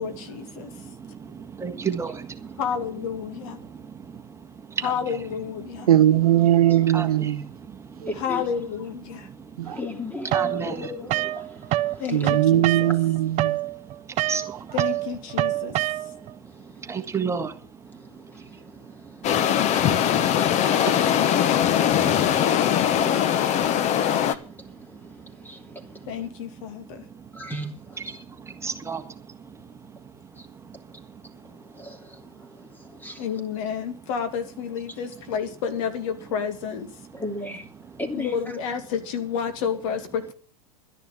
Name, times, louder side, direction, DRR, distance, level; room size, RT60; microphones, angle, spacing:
voice 1, 0.0-0.7 2.6-3.6 4.8-5.9 8.2-9.3 12.0-12.9 14.7-15.9 26.1-27.0 33.2-36.9 38.1-40.3, left 7 dB, 60° left, 2.5 m, -30 dB
voice 2, 0.5-2.6 3.6-4.9 5.7-5.9 6.9-8.1 9.1-9.8 10.3-10.9 11.9-12.0 13.5-14.7 15.6-26.0 26.9-27.4 28.3-32.3, right 5 dB, 15° right, 1.7 m, -37 dB
voice 3, 5.9-7.4 9.6-9.8 12.1-13.6, right 12 dB, 80° right, 1.1 m, -19 dB
voice 4, 6.4-7.1 8.0-8.5 9.6-12.3 12.9-13.0 16.2-17.0 17.8-20.9 21.4-26.3 27.3-28.6 30.3-30.5 31.4-33.3 37.1-38.6, left 1 dB, 10° left, 3.0 m, -40 dB
sound 1, 10.3-12.0 12.2-16.3, right 15 dB, 40° right, 0.8 m, -26 dB
sound 2, 19.2-24.3, left 9 dB, 35° left, 1.1 m, -21 dB
12.0 x 10.5 x 7.0 m
hypercardioid pair, 105°, 19 cm